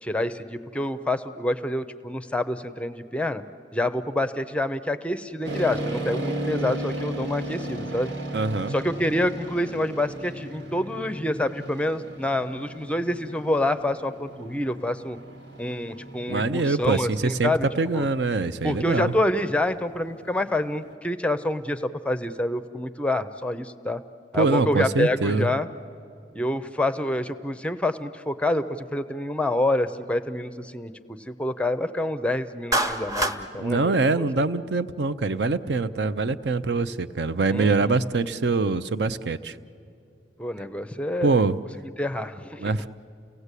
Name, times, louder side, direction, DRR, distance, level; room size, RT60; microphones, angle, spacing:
voice 1, 0.0-3.4 3.7-8.1 8.7-15.2 15.6-17.7 17.9-18.1 18.6-24.0 24.3-25.7 26.3-30.9 31.3-34.2 37.5-37.9 40.4-41.4 42.0-42.7, left 1 dB, 5° left, 11 dB, 0.6 m, -27 dB
sound 1, 5.4-20.9, right 1 dB, 85° right, 2.3 m, -36 dB
voice 2, 8.3-8.7 16.3-19.1 24.3-25.5 33.6-39.6 41.2-41.6 42.6-42.9, right 3 dB, 65° right, 13 dB, 0.7 m, -24 dB
Clapping, 32.7-33.4, right 1 dB, 20° right, 1.0 m, -24 dB
29.5 x 18.0 x 8.3 m, 2.5 s
head